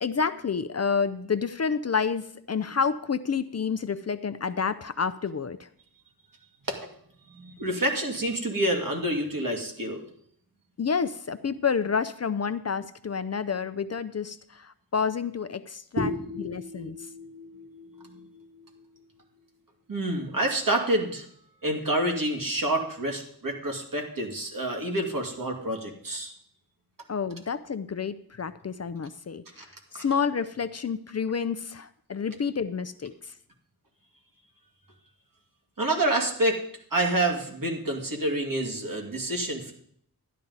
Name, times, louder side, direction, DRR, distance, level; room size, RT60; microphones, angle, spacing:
voice 1, 0.0-5.7 10.8-16.1 16.4-17.0 27.1-29.4 29.9-33.3, left 6 dB, 45° left, 12 dB, 0.5 m, -29 dB
voice 2, 7.3-10.0 16.0-18.8 19.9-21.2 21.6-26.3 29.6-29.7 29.9-30.0 35.8-36.6 36.9-39.7, right 1 dB, 60° right, 1 dB, 2.3 m, -28 dB
12.0 x 11.0 x 4.0 m, 0.64 s
wide cardioid pair, 80°, 38 cm